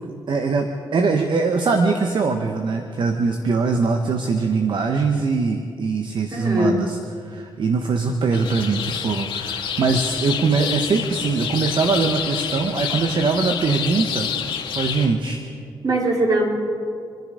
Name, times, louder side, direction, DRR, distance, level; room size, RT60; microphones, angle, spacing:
voice 1, 0.1-14.5 14.7-15.4, right 4 dB, 60° right, 5 dB, 1.2 m, -22 dB
voice 2, 6.3-6.8 15.8-16.4, right 1 dB, 45° right, -2 dB, 4.6 m, -20 dB
sound 1, 8.3-15.1, left 8 dB, 75° left, 1.9 m, -28 dB
27.0 x 10.5 x 5.1 m, 2.3 s
supercardioid pair, 50°, 9 cm